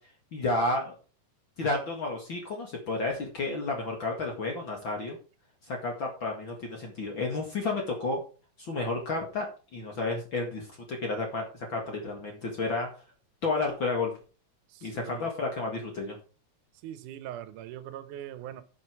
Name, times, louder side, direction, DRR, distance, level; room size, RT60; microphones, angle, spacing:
voice 1, 0.3-0.9 1.6-5.2 5.7-8.2 8.6-10.7 11.0-12.9 13.4-14.1 14.8-16.2, left 3 dB, 45° left, 1 dB, 2.4 m, -31 dB
voice 2, 14.7-15.3 16.8-18.6, right 11 dB, 85° right, 13 dB, 2.3 m, -41 dB
11.0 x 6.6 x 4.7 m, 0.36 s
omnidirectional pair, 3.5 m